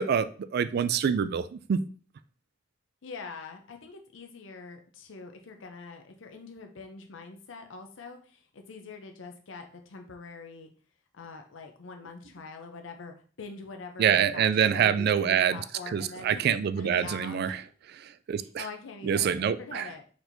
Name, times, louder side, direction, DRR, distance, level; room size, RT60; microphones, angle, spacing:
voice 1, 0.0-1.8 14.0-15.6 15.9-17.6 18.0-18.6 19.0-19.9, right 8 dB, 55° right, 0.3 m, -26 dB
voice 2, 3.0-10.7 11.1-16.4 16.8-17.6 18.3-20.0, left 4 dB, 85° left, 0.6 m, -44 dB
4.4 x 4.3 x 2.6 m
head